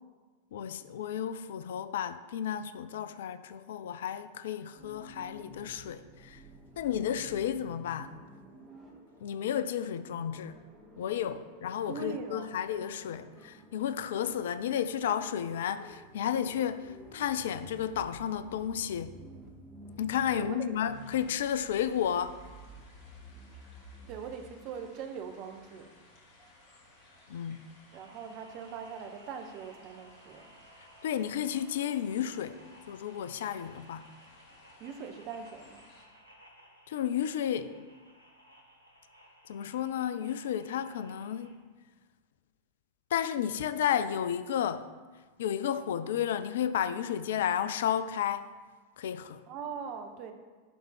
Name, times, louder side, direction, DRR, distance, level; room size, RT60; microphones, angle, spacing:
voice 1, 0.5-6.4 6.8-8.1 9.2-10.6 11.0-19.2 20.0-22.4 27.3-27.6 30.8-32.6 32.9-34.1 36.9-37.9 39.5-41.6 43.1-44.9 45.4-48.5 49.0-49.4, left 9 dB, 60° left, 0.4 m, -32 dB
sound 1, 4.8-24.3, right 1 dB, 20° right, 1.7 m, -52 dB
voice 2, 11.9-12.6 20.3-20.8 24.1-25.9 27.9-30.4 34.8-35.8 49.5-50.3, right 6 dB, 40° right, 0.9 m, -41 dB
sound 2, 20.9-36.0, left 2 dB, 40° left, 2.0 m, -60 dB
sound 3, 27.9-41.6, equal, 85° right, 1.0 m, -58 dB
10.5 x 3.7 x 4.5 m
figure-of-eight pair, 90°, 0 cm